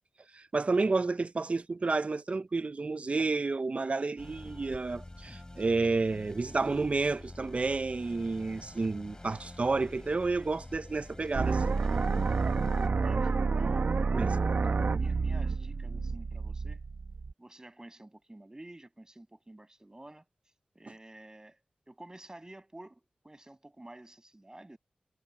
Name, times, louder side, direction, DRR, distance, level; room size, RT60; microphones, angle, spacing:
voice 1, 0.3-11.8 14.1-14.3, right 3 dB, 50° right, 0.6 m, -30 dB
sound 1, 4.2-12.9, left 2 dB, 25° left, 4.3 m, -47 dB
sound 2, 11.3-17.3, right 4 dB, 75° right, 1.1 m, -29 dB
voice 2, 12.9-14.0 14.3-16.8 17.4-20.3 20.8-24.8, right 1 dB, 25° right, 6.9 m, -50 dB
cardioid pair, 55°, 3 cm